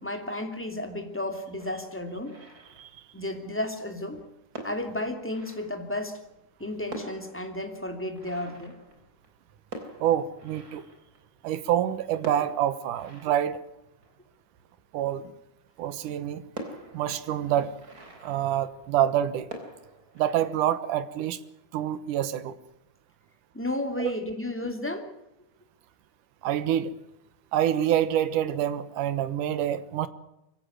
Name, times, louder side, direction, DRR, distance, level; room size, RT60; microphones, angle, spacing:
voice 1, 0.0-2.3 3.1-4.2 4.6-6.2 6.6-8.8 23.5-25.1, left 1 dB, 5° left, 5 dB, 2.3 m, -33 dB
sound 1, 1.6-3.4 4.2-4.3 4.5-6.3 6.6-6.7 6.9-11.6 12.2-14.8 15.3-15.4 15.8-15.9 16.5-19.2 19.5-20.4, right 2 dB, 30° right, 4.1 m, -45 dB
voice 2, 10.0-10.8 11.4-13.6 14.9-15.3 15.8-16.4 16.9-17.7 18.2-19.5 20.2-21.4 21.7-22.6 24.0-24.1 26.4-26.9 27.5-30.1, right 11 dB, 80° right, 14 dB, 2.7 m, -26 dB
23.5 x 16.5 x 8.9 m, 0.89 s
omnidirectional pair, 3.6 m